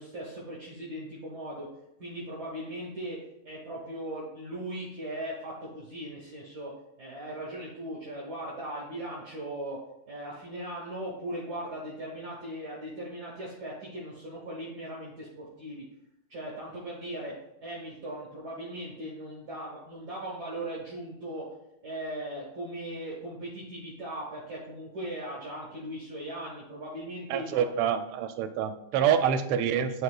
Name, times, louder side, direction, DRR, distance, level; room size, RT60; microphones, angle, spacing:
voice 1, 0.0-1.7 2.0-3.2 3.4-6.7 7.0-9.8 10.1-15.8 16.3-17.3 17.6-21.5 21.8-27.6 28.9-29.3, right 1 dB, 50° right, -6 dB, 2.0 m, -38 dB
voice 2, 27.3-30.0, right 8 dB, 90° right, 9 dB, 1.5 m, -26 dB
11.5 x 4.1 x 2.4 m, 0.87 s
omnidirectional pair, 2.4 m